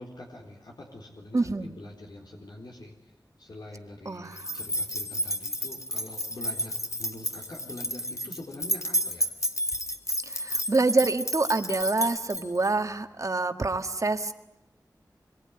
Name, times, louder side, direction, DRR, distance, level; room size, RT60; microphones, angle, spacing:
voice 1, 0.0-2.9 3.4-9.3, left 1 dB, 75° left, 0 dB, 4.1 m, -44 dB
voice 2, 1.3-1.7 4.1-4.5 10.3-14.3, right 3 dB, 50° right, 7 dB, 1.8 m, -26 dB
sound 1, 4.4-12.7, equal, 45° left, 2.3 m, -31 dB
25.0 x 23.0 x 9.9 m, 0.89 s
wide cardioid pair, 75°, 7 cm